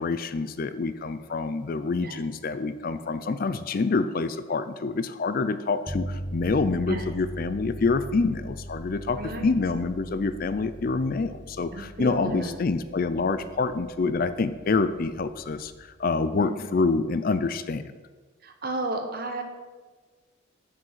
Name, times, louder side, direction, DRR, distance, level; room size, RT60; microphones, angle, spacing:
voice 1, 0.0-15.7 16.0-17.8, left 4 dB, 45° left, 12 dB, 0.4 m, -27 dB
sound 1, 5.9-16.0, equal, ahead, 0.6 m, -40 dB
voice 2, 9.2-9.5 11.7-12.6 16.3-16.7 18.4-19.4, right 1 dB, 45° right, 5 dB, 1.1 m, -33 dB
7.4 x 6.2 x 7.4 m, 1.4 s
head